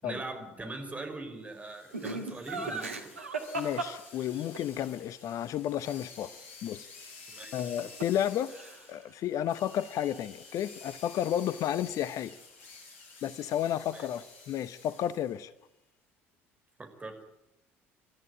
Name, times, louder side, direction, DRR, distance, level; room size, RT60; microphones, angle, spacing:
voice 1, 0.0-3.1 7.3-7.7 13.9-14.1 16.8-17.2, right 2 dB, 20° right, 5 dB, 5.3 m, -41 dB
sound 1, 1.5-15.4, left 4 dB, 75° left, 5.1 m, -51 dB
Laughter, 1.9-4.6 7.4-8.2 8.5-9.0, right 3 dB, 85° right, 2.0 m, -36 dB
voice 2, 3.5-6.3 6.6-6.9 7.5-8.5 8.9-12.4 13.2-15.5, left 10 dB, 50° left, 16 dB, 0.8 m, -32 dB
27.5 x 13.5 x 9.2 m, 0.88 s
figure-of-eight pair, 60°, 7 cm